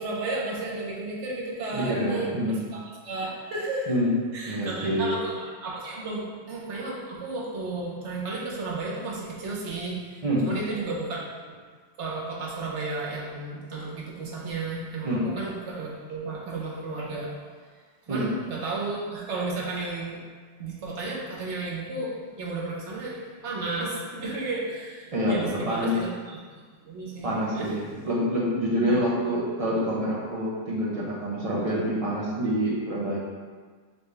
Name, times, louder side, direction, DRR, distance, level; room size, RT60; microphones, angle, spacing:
voice 1, 0.0-2.5 3.0-3.9 4.3-11.6 12.0-17.4 18.1-20.3 20.6-26.4 26.8-28.0 28.8-29.0 31.5-31.7, right 3 dB, 65° right, -4 dB, 1.2 m, -33 dB
voice 2, 1.7-2.6 3.9-4.1 4.5-5.1 10.2-10.5 15.0-15.3 18.1-18.3 25.1-26.0 27.2-33.2, equal, 35° right, -4 dB, 0.7 m, -26 dB
4.1 x 3.4 x 3.3 m, 1.5 s
omnidirectional pair, 1.3 m